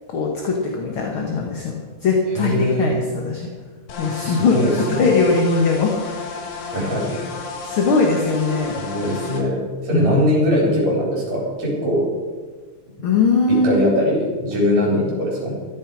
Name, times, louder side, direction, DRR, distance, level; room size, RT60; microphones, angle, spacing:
voice 1, 0.1-3.5 4.0-6.2 7.6-8.8 9.9-10.3 13.0-13.9, left 4 dB, 50° left, 0 dB, 2.0 m, -20 dB
voice 2, 2.3-2.9 4.1-5.1 6.7-7.3 8.8-12.1 13.5-15.5, equal, 65° right, -4 dB, 5.0 m, -21 dB
sound 1, 3.9-9.4, left 4 dB, 75° left, 2.9 m, -32 dB
14.5 x 13.5 x 4.8 m, 1.5 s
omnidirectional pair, 3.4 m